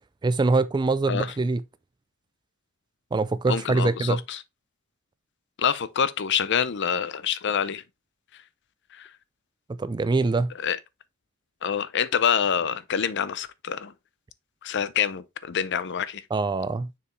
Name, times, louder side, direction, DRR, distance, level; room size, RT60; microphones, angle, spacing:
voice 1, 0.2-1.6 3.1-4.2 9.7-10.5 16.3-17.0, right 3 dB, 20° right, 0.3 m, -24 dB
voice 2, 3.5-4.4 5.6-7.8 8.9-9.1 10.6-10.8 11.6-13.9 14.6-16.2, left 7 dB, 55° left, 0.6 m, -26 dB
6.7 x 4.6 x 3.2 m
head